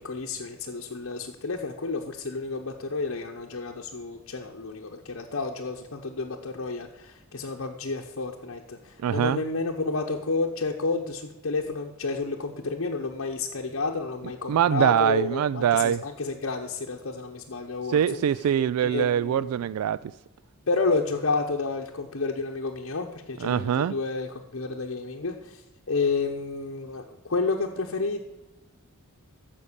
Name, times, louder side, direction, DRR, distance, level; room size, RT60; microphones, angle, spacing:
voice 1, 0.0-18.2 18.8-19.5 20.7-28.2, left 3 dB, 60° left, 0.9 m, -30 dB
voice 2, 9.0-9.4 14.5-16.0 17.9-20.0 23.4-23.9, right 9 dB, 80° right, 0.3 m, -23 dB
14.5 x 5.3 x 6.7 m
head